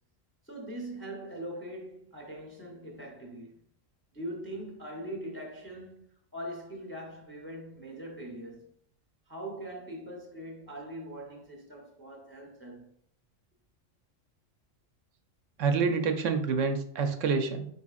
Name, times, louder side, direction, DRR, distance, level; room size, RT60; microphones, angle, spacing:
voice 1, 0.4-3.6 4.1-6.1 6.3-8.7 9.3-12.9, right 1 dB, 15° left, 0.6 m, -41 dB
voice 2, 15.6-17.7, right 5 dB, 75° right, 0.9 m, -27 dB
4.3 x 4.1 x 2.4 m
omnidirectional pair, 1.3 m